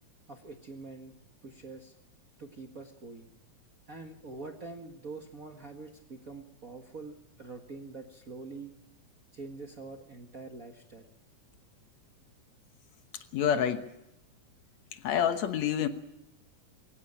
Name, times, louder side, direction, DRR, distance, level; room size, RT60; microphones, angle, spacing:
voice 1, 0.3-1.1 1.4-1.9 2.4-3.3 3.9-8.7 9.3-11.1, right 3 dB, 35° right, 4 dB, 1.4 m, -45 dB
voice 2, 13.3-13.9 14.9-15.9, left 9 dB, 65° left, 9 dB, 2.3 m, -27 dB
22.0 x 18.0 x 8.8 m, 0.87 s
omnidirectional pair, 3.5 m